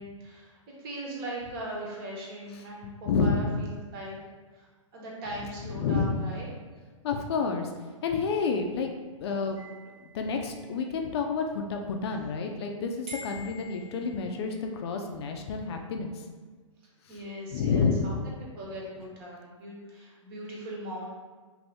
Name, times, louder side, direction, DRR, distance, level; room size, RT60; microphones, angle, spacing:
voice 1, 0.0-4.2 4.5-6.5 17.1-21.1, right 1 dB, 45° right, -3 dB, 1.1 m, -40 dB
voice 2, 3.1-3.4 5.7-6.1 7.0-7.7 8.0-8.9 9.2-9.6 10.1-16.1 17.5-18.2, left 5 dB, 50° left, 4 dB, 0.4 m, -29 dB
sound 1, 9.6-11.1 13.1-14.7, equal, 85° right, 1.5 m, -47 dB
2.7 x 2.6 x 3.3 m, 1.4 s
hypercardioid pair, 125°, 17 cm